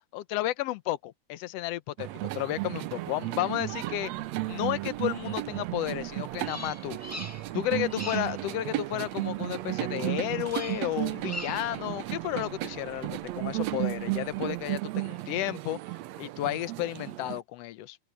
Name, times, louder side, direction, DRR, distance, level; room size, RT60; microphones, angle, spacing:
voice 1, 0.1-4.1 4.5-7.0 7.5-15.8 16.2-18.0, left 14 dB, 70° left, 1.6 m, -32 dB
sound 1, 2.0-17.4, right 18 dB, 75° right, 1.7 m, -34 dB
sound 2, 3.5-14.8, right 5 dB, 50° right, 3.6 m, -52 dB
Bird vocalization bird call bird song, 6.4-7.6 7.9-8.4 10.4-10.9 11.2-11.8, left 1 dB, 10° left, 0.6 m, -41 dB
open air
omnidirectional pair, 3.5 m